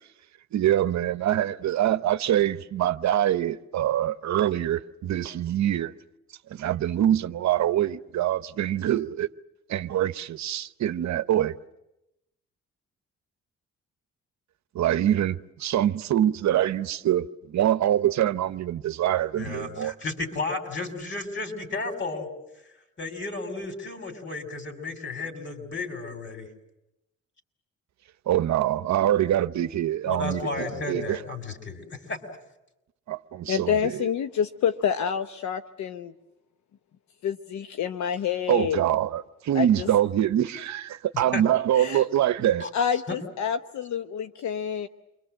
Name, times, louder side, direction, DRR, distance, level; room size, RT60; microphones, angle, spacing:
voice 1, 0.5-5.9 6.5-9.3 9.7-11.5 14.7-19.9 28.3-31.2 33.1-34.1 38.5-42.7, right 11 dB, 65° right, 0.9 m, -24 dB
voice 2, 19.4-22.3 23.0-26.5 30.1-32.2 41.3-41.4 42.6-42.7 43.1-43.2, left 3 dB, 40° left, 5.8 m, -33 dB
voice 3, 33.5-36.1 37.2-38.8 39.5-39.9 41.8-42.0 42.7-44.9, left 8 dB, 70° left, 0.9 m, -28 dB
29.0 x 23.0 x 7.7 m
cardioid pair, 90°, 30 cm